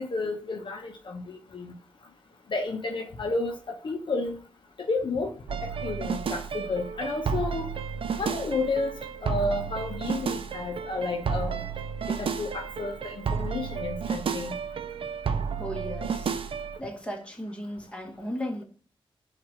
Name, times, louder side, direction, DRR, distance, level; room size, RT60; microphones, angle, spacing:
voice 1, 0.0-1.7 2.5-4.4 4.8-5.3 5.6-7.7 8.2-8.9 9.2-11.6 12.1-14.5, left 3 dB, 55° left, 0.7 m, -31 dB
sound 1, 5.5-16.8, right 6 dB, 70° right, 0.4 m, -32 dB
voice 2, 15.6-16.4 16.8-18.6, equal, 10° left, 1.2 m, -36 dB
4.5 x 2.5 x 4.3 m
cardioid pair, 55°, 10 cm